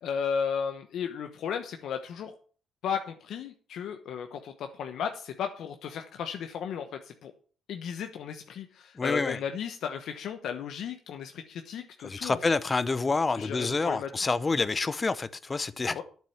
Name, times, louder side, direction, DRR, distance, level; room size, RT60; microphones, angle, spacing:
voice 1, 0.0-2.3 2.8-7.3 7.7-12.4 13.4-14.1 15.9-16.0, left 7 dB, 75° left, 1.0 m, -34 dB
voice 2, 9.0-9.4 12.0-16.0, left 3 dB, 30° left, 0.8 m, -28 dB
9.3 x 7.5 x 7.1 m
cardioid pair, 90°, 0 cm